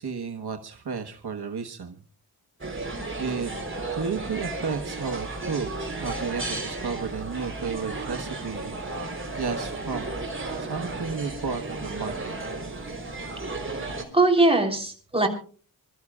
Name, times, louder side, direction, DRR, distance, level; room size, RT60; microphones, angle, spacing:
voice 1, 0.0-2.0 3.2-3.5 3.9-5.7 6.0-8.8 9.4-10.1 10.6-12.3, right 5 dB, 75° right, 5 dB, 1.3 m, -32 dB
sound 1, 2.6-14.0, right 2 dB, 30° right, 3.7 m, -34 dB
voice 2, 13.8-15.3, right 2 dB, 15° right, 1 dB, 3.4 m, -21 dB
26.5 x 13.5 x 2.4 m, 0.40 s
wide cardioid pair, 85°, 39 cm